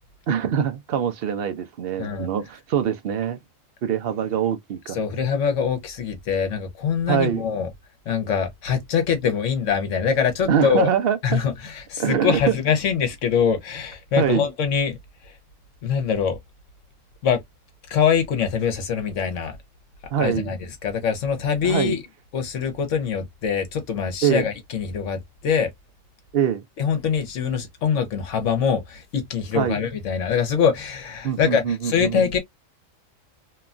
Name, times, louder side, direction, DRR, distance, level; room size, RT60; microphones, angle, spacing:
voice 1, 0.3-3.4 3.8-5.0 7.1-7.4 10.5-11.4 12.0-12.5 14.2-14.4 20.1-20.5 21.6-21.9 24.2-24.5 26.3-26.6 29.5-29.8 31.2-32.2, right 8 dB, 60° right, 0.7 m, -23 dB
voice 2, 4.9-7.7 8.1-10.9 11.2-15.0 15.8-16.4 17.2-17.4 17.9-19.6 20.2-22.0 22.3-25.7 26.8-32.4, left 7 dB, 70° left, 1.1 m, -23 dB
3.0 x 2.2 x 2.4 m
omnidirectional pair, 1.4 m